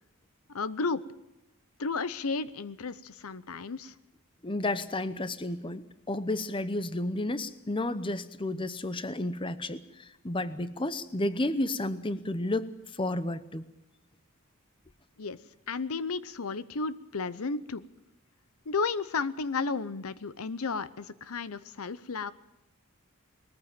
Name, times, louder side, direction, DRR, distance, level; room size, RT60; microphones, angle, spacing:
voice 1, 0.5-1.0 1.8-3.9 15.2-15.4 15.7-17.9 18.7-22.3, left 4 dB, 80° left, 16 dB, 0.8 m, -33 dB
voice 2, 4.4-12.7 13.0-13.6, left 2 dB, 25° left, 14 dB, 0.8 m, -32 dB
20.0 x 14.5 x 9.0 m, 0.88 s
head